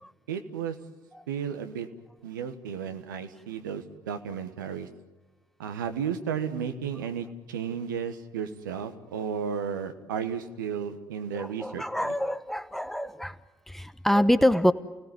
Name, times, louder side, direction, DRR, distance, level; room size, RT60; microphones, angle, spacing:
voice 1, 0.3-0.7 1.3-1.9 2.2-4.9 5.6-12.1, right 7 dB, 75° right, 7 dB, 1.3 m, -33 dB
voice 2, 11.3-13.4 13.7-14.7, equal, 5° left, 12 dB, 1.1 m, -25 dB
29.0 x 18.0 x 9.5 m, 1.2 s
figure-of-eight pair, 50°, 11 cm